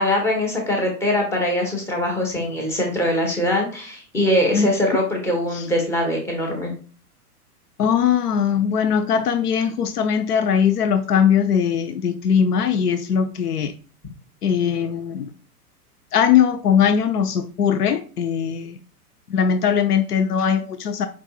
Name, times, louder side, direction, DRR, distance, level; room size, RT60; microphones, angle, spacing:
voice 1, 0.0-6.7, left 1 dB, 5° left, 0 dB, 0.6 m, -22 dB
voice 2, 7.8-13.7 14.4-15.3 16.1-18.8 19.3-21.1, left 7 dB, 80° left, 10 dB, 0.5 m, -20 dB
4.7 x 3.5 x 2.2 m, 0.38 s
figure-of-eight pair, 110°, 46 cm